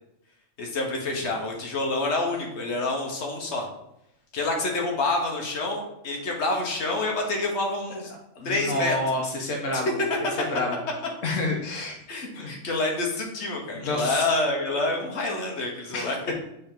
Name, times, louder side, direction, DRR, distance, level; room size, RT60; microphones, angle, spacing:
voice 1, 0.6-3.7 4.3-8.1 8.4-9.0 9.7-9.8 12.1-16.2, left 2 dB, 65° left, 0 dB, 1.4 m, -27 dB
voice 2, 8.3-10.0 10.4-10.8 11.2-12.0 12.3-12.5 13.7-14.3 15.9-16.1, left 2 dB, 80° left, 0 dB, 1.3 m, -28 dB
6.8 x 3.9 x 3.8 m, 0.82 s
omnidirectional pair, 1.3 m